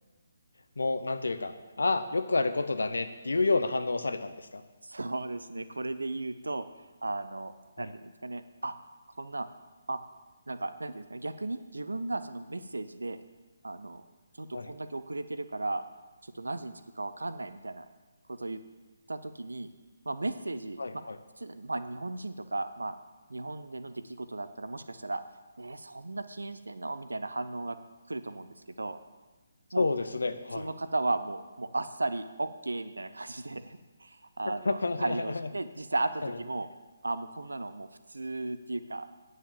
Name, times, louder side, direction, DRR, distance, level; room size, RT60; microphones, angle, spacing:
voice 1, 0.8-4.6 14.5-14.7 20.8-21.2 29.8-30.7 34.6-35.2 36.2-36.3, left 3 dB, 70° left, 10 dB, 0.9 m, -29 dB
voice 2, 4.8-6.7 7.0-8.7 9.2-9.5 9.9-10.0 10.5-13.2 13.6-14.0 14.4-15.8 16.2-17.8 18.3-18.6 19.1-19.7 20.0-21.0 21.4-23.0 23.3-25.2 25.6-27.8 28.1-29.0 29.7-29.9 30.5-36.7 37.0-39.1, right 2 dB, 75° right, 12 dB, 0.8 m, -35 dB
9.4 x 6.6 x 7.5 m, 1.2 s
figure-of-eight pair, 140°, 0 cm